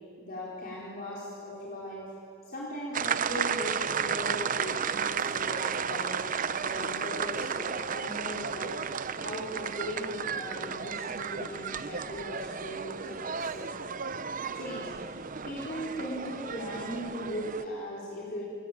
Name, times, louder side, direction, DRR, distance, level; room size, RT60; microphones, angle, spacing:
voice 1, 0.2-2.2 2.5-6.2 6.6-8.8 9.2-13.7 14.5-18.4, equal, 45° left, -5 dB, 4.7 m, -38 dB
sound 1, 2.9-17.6, right 6 dB, 40° right, 0.7 m, -33 dB
28.5 x 22.5 x 9.1 m, 2.5 s
head